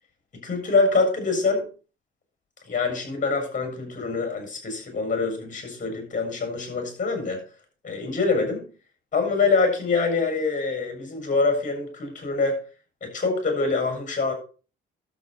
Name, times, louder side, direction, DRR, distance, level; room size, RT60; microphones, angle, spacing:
voice 1, 0.3-1.7 2.7-7.4 7.8-8.6 9.1-12.6 13.0-14.3, left 4 dB, 40° left, 5 dB, 7.1 m, -25 dB
12.0 x 8.0 x 4.4 m, 0.36 s
cardioid pair, 90°, 20 cm